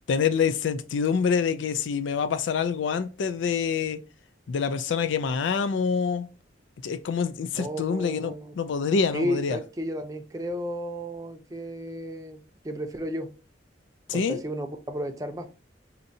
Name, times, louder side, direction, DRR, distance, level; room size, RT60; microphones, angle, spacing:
voice 1, 0.1-4.0 4.5-6.3 6.8-9.6 14.1-14.4, left 6 dB, 90° left, 0.4 m, -26 dB
voice 2, 7.6-8.5 9.1-13.3 14.1-15.5, equal, 20° right, 0.5 m, -33 dB
4.3 x 2.6 x 2.6 m
head